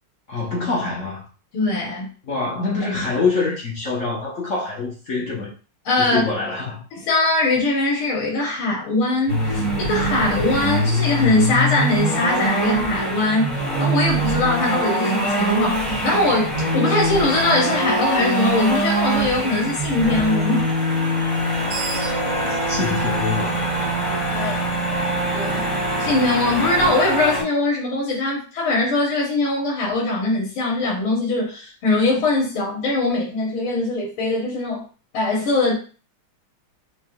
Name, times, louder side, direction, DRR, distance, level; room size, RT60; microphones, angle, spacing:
voice 1, 0.3-1.3 2.2-5.5 6.0-6.8 22.5-23.7, left 3 dB, 55° left, 1.0 m, -25 dB
voice 2, 1.5-2.1 5.9-6.2 6.9-13.5 13.8-20.6 24.3-25.7 26.0-34.8 35.1-35.8, left 2 dB, 80° left, 2.0 m, -21 dB
sound 1, 9.3-27.4, right 1 dB, 10° left, 2.0 m, -23 dB
Screech, 21.4-24.6, right 7 dB, 80° right, 1.5 m, -33 dB
4.5 x 3.2 x 2.3 m
omnidirectional pair, 2.3 m